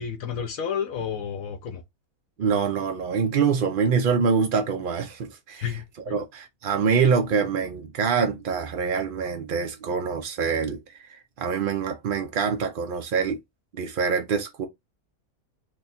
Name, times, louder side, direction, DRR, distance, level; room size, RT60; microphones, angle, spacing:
voice 1, 0.0-1.8 5.6-6.2, left 7 dB, 70° left, 1.0 m, -31 dB
voice 2, 2.4-5.7 6.1-11.1 11.4-13.4 13.7-14.7, right 6 dB, 75° right, 0.4 m, -25 dB
3.0 x 2.3 x 4.0 m
omnidirectional pair, 1.6 m